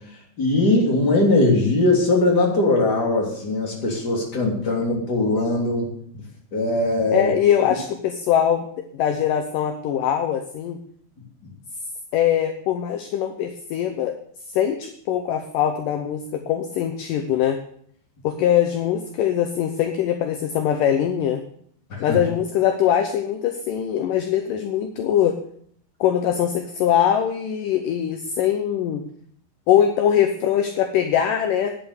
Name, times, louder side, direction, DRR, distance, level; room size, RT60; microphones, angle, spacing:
voice 1, 0.4-5.9 6.5-7.3 21.9-22.2, left 2 dB, 25° left, -1 dB, 3.2 m, -20 dB
voice 2, 7.1-8.7 8.9-10.8 12.1-14.1 14.5-17.6 18.2-21.4 22.0-25.4 26.0-29.0 29.7-31.8, left 9 dB, 75° left, 6 dB, 2.2 m, -22 dB
10.0 x 7.9 x 8.3 m, 0.63 s
omnidirectional pair, 4.5 m